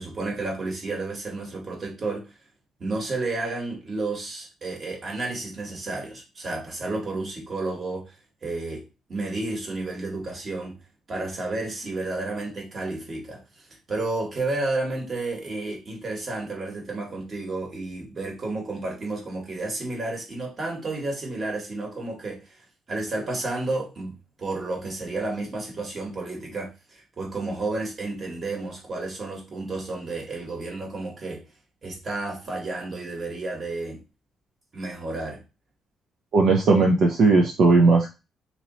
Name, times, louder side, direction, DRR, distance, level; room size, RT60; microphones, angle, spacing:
voice 1, 0.0-2.3 2.8-8.1 8.4-10.8 11.1-31.4 31.8-34.0 34.7-35.4, right 2 dB, 40° right, 1.7 m, -31 dB
voice 2, 36.3-38.1, right 3 dB, 65° right, 0.7 m, -17 dB
3.0 x 3.0 x 3.9 m
cardioid pair, 90°, 0 cm